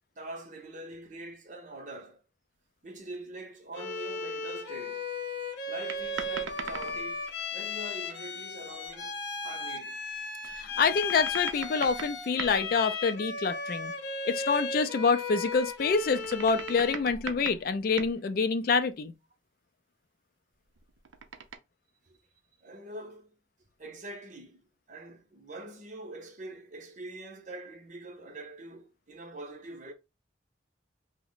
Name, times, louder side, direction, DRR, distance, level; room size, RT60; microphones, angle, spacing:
voice 1, 0.2-2.2 2.8-5.1 5.7-7.2 7.5-10.0 22.1-22.2 22.6-23.3 23.8-24.6 24.9-29.9, right 2 dB, 40° right, 0.7 m, -44 dB
Bowed string instrument, 3.7-17.1, left 3 dB, 70° left, 0.7 m, -36 dB
sound 1, 5.9-7.4 8.8-9.0 10.4-12.8 15.6-18.2 20.8-21.6, right 6 dB, 85° right, 0.5 m, -41 dB
voice 2, 10.6-13.9 14.3-19.1, left 5 dB, 50° left, 0.3 m, -27 dB
2.9 x 2.1 x 3.8 m
head